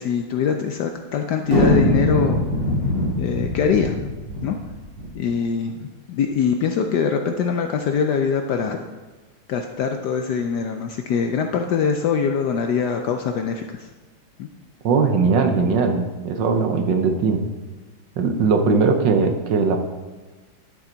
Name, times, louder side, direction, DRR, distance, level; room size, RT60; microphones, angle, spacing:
voice 1, 0.0-2.5 3.2-3.9 4.4-4.6 5.1-8.9 9.5-13.9 14.4-14.5, left 6 dB, 75° left, 5 dB, 1.0 m, -23 dB
sound 1, 1.5-5.1, left 1 dB, 80° right, 3.7 m, -22 dB
voice 2, 14.8-17.4 18.2-19.8, right 4 dB, 65° right, 5 dB, 1.4 m, -19 dB
11.5 x 7.1 x 3.9 m, 1.3 s
omnidirectional pair, 2.3 m